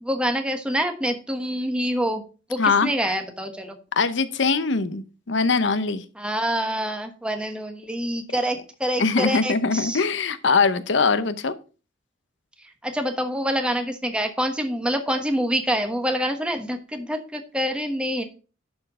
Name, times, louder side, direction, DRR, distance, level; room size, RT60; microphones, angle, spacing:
voice 1, 0.0-2.2 2.5-3.8 6.2-10.0 12.8-18.2, equal, 5° right, 5 dB, 1.1 m, -26 dB
voice 2, 2.6-2.9 4.0-6.0 9.0-11.5, left 4 dB, 65° left, 13 dB, 0.8 m, -22 dB
11.0 x 4.4 x 4.9 m, 0.35 s
head